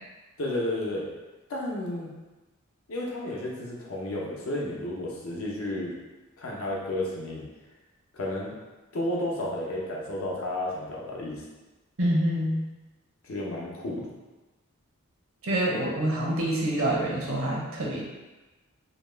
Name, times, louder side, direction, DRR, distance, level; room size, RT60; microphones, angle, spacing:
voice 1, 0.4-1.0 1.5-2.1 2.9-5.9 6.4-7.4 8.1-8.5 8.9-11.4 13.2-14.1, left 1 dB, 70° left, -3 dB, 0.7 m, -32 dB
voice 2, 12.0-12.6 15.4-18.0, right 1 dB, 65° right, -3 dB, 0.7 m, -26 dB
2.8 x 2.1 x 3.2 m, 1.2 s
head